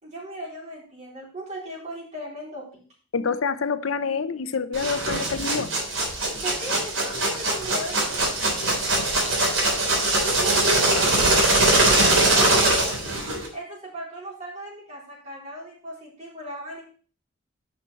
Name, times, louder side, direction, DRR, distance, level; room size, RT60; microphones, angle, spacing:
voice 1, 0.0-2.6 6.4-8.3 10.3-11.3 11.6-13.0 13.5-16.8, equal, 35° right, -4 dB, 4.1 m, -37 dB
voice 2, 3.1-5.7 8.4-8.5, left 5 dB, 85° left, 13 dB, 0.6 m, -27 dB
sound 1, 4.7-13.5, right 2 dB, 85° right, 3.5 m, -22 dB
9.9 x 5.9 x 4.1 m, 0.43 s
head